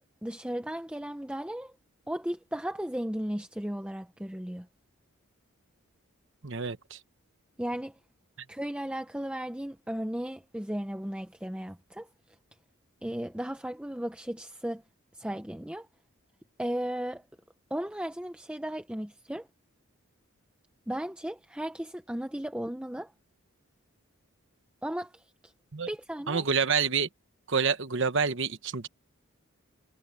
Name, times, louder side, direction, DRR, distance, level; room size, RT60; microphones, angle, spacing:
voice 1, 0.0-1.7 2.1-4.7 7.6-7.9 8.5-12.1 13.0-14.8 15.1-15.9 16.6-17.2 17.7-19.5 20.9-23.1 24.8-25.5 25.9-26.4, right 1 dB, 5° right, 0.6 m, -35 dB
voice 2, 6.4-7.0 25.7-25.9 26.3-27.1 27.5-28.9, right 5 dB, 55° right, 1.2 m, -28 dB
head